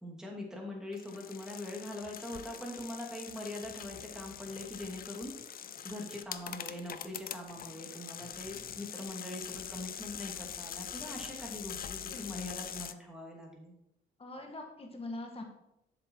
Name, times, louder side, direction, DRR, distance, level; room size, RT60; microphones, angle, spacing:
voice 1, 0.0-5.3 5.8-13.7, left 1 dB, 5° right, -1 dB, 2.7 m, -42 dB
sound 1, 0.9-12.9, left 9 dB, 50° left, 0.6 m, -44 dB
voice 2, 12.1-12.5 14.2-15.4, left 2 dB, 30° left, 3 dB, 1.7 m, -43 dB
7.6 x 6.8 x 4.6 m, 0.82 s
cardioid pair, 90°, 20 cm